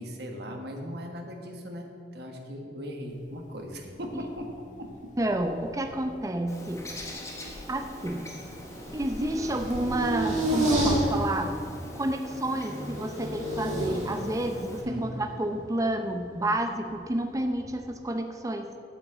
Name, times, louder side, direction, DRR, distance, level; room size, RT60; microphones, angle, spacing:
voice 1, 0.0-4.5 4.8-4.9 14.8-15.1, equal, 65° right, 3 dB, 1.4 m, -38 dB
Thunder, 3.1-11.0, left 2 dB, 45° left, 0.5 m, -42 dB
sound 1, 4.0-5.0 5.3-6.2 6.6-16.9 17.5-18.0, right 1 dB, 45° right, 2.4 m, -32 dB
voice 2, 5.2-6.9 7.7-8.3 8.9-11.5 12.0-18.7, right 1 dB, 20° right, 6 dB, 0.6 m, -30 dB
Bird, 6.5-14.8, left 1 dB, 20° left, 1.3 m, -44 dB
8.4 x 6.3 x 7.9 m, 2.6 s
head